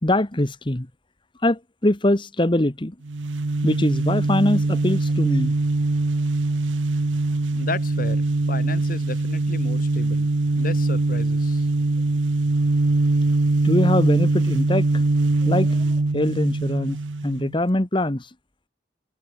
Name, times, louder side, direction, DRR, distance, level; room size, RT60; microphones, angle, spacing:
voice 1, 0.0-0.9 1.4-2.9 3.6-5.5 13.6-15.0 15.4-17.0 17.2-18.3, left 1 dB, 25° left, 1.3 m, -23 dB
sound 1, 3.0-17.6, right 2 dB, 85° right, 0.9 m, -22 dB
voice 2, 7.5-10.3 10.6-11.7, left 2 dB, 50° left, 5.5 m, -33 dB
head